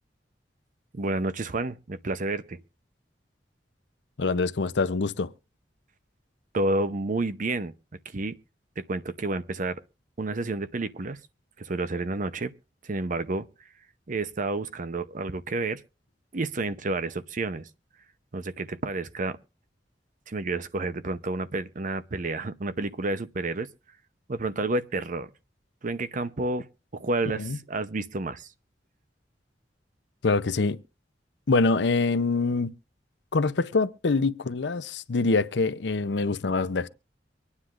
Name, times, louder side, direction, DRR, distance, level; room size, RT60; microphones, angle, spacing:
voice 1, 0.9-2.6 6.5-7.7 8.1-8.3 8.8-9.8 10.2-11.2 11.6-12.5 12.8-13.5 14.1-15.8 16.3-17.7 18.3-19.4 20.3-23.7 24.3-25.3 25.8-26.7 26.9-28.5, right 2 dB, 50° right, 0.7 m, -30 dB
voice 2, 4.2-5.3 27.4-27.6 30.2-30.8 31.5-32.7 33.3-36.9, left 3 dB, 80° left, 0.6 m, -25 dB
24.5 x 9.7 x 2.5 m
head